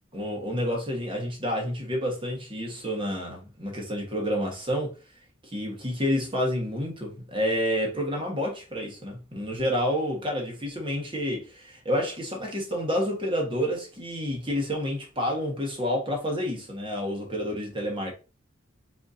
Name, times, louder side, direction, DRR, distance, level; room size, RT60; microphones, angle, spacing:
voice 1, 0.1-5.0 5.4-18.1, equal, 25° right, 1.3 m, -29 dB
4.3 x 4.1 x 2.6 m
head